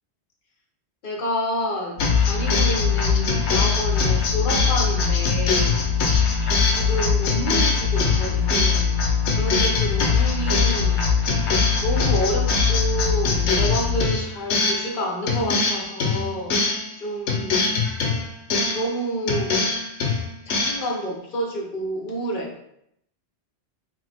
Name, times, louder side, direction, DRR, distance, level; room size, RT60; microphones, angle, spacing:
voice 1, 1.0-5.8 6.7-9.0 9.3-11.1 11.8-17.6 18.7-19.7 20.5-22.5, equal, 55° left, -1 dB, 0.8 m, -29 dB
sound 1, 2.0-15.0 15.3-16.9 17.3-18.9 19.3-20.9, left 5 dB, 85° left, 0.9 m, -21 dB
3.4 x 2.0 x 3.3 m, 0.75 s
omnidirectional pair, 1.1 m